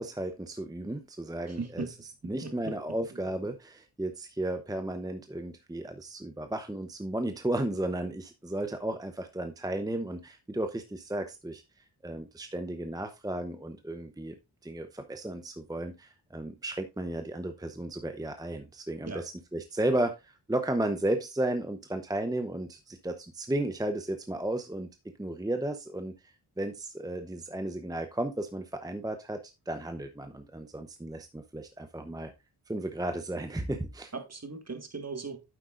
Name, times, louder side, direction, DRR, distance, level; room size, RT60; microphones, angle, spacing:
voice 1, 0.0-11.6 12.0-14.4 14.6-24.9 25.2-29.4 29.7-32.3 32.7-34.1, right 1 dB, 10° right, 0.8 m, -34 dB
voice 2, 1.6-1.9 2.2-2.7 19.1-19.2 34.1-35.4, right 4 dB, 35° right, 1.8 m, -38 dB
9.2 x 7.9 x 2.5 m
cardioid pair, 65°, 42 cm